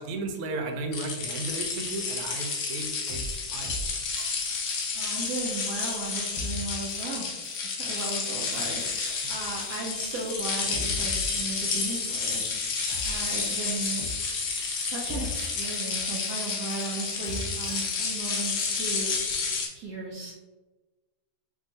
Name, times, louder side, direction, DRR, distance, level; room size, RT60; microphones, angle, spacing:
voice 1, 0.0-3.8 9.2-9.3, right 3 dB, 85° right, 4 dB, 1.5 m, -35 dB
sound 1, 0.9-19.7, left 4 dB, 65° left, 0.8 m, -31 dB
sound 2, 2.8-2.9 3.1-3.4 3.6-3.9 4.2-5.5 5.8-6.1 6.3-6.6 6.9-7.2 7.4-7.7 8.0-8.3 8.5-9.9 10.2-10.4 10.7-12.1 12.3-12.6 12.9-13.7 14.0-14.3 14.5-14.8 15.1-16.4 16.7-17.0 17.2-18.1 18.3-18.6, left 2 dB, 25° left, 1.1 m, -41 dB
voice 2, 4.9-7.3 7.6-12.4 13.0-14.0 14.8-19.1 19.7-20.5, right 3 dB, 70° right, -5 dB, 1.0 m, -36 dB
3.5 x 2.4 x 3.9 m, 1.2 s
omnidirectional pair, 2.4 m